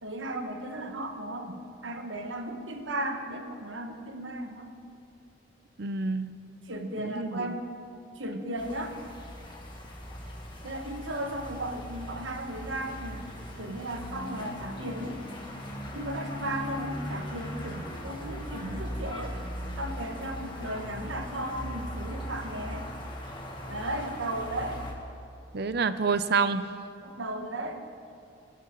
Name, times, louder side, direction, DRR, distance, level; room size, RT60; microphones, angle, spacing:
voice 1, 0.0-4.7 6.7-7.7 8.2-8.9 10.6-13.3 13.6-15.2 15.9-19.3 19.8-22.8 23.7-24.8 27.0-27.8, right 1 dB, 85° right, 5 dB, 1.3 m, -35 dB
voice 2, 5.8-6.3 7.0-7.6 25.5-26.6, right 5 dB, 60° right, 12 dB, 0.6 m, -28 dB
sound 1, 8.6-24.9, equal, 25° left, 1.9 m, -39 dB
21.5 x 12.0 x 3.9 m, 2.6 s
head